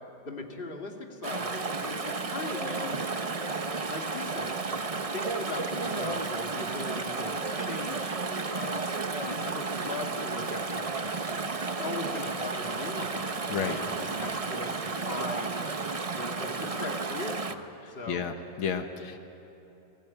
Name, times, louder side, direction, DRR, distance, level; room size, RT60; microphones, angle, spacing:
voice 1, 0.3-3.0 3.9-4.5 5.1-8.2 8.5-8.9 9.1-11.4 11.8-15.6 16.1-18.2, left 3 dB, 25° left, 2 dB, 2.4 m, -39 dB
Chatter / Stream, 1.2-17.5, right 4 dB, 60° right, 0.3 m, -32 dB
voice 2, 18.1-19.2, left 6 dB, 80° left, 6 dB, 2.1 m, -32 dB
29.5 x 21.0 x 9.0 m, 3.0 s
omnidirectional pair, 2.2 m